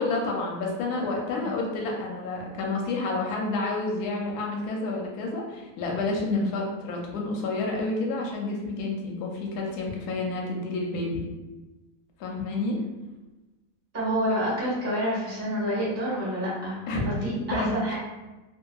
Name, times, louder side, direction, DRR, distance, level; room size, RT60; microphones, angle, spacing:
voice 1, 0.0-11.2 12.2-12.8 16.9-18.0, left 2 dB, 70° left, -1 dB, 1.0 m, -29 dB
voice 2, 6.3-6.6 13.9-16.8 17.1-17.2 17.5-18.0, equal, 15° right, -8 dB, 0.5 m, -28 dB
2.7 x 2.5 x 2.3 m, 1.1 s
omnidirectional pair, 2.0 m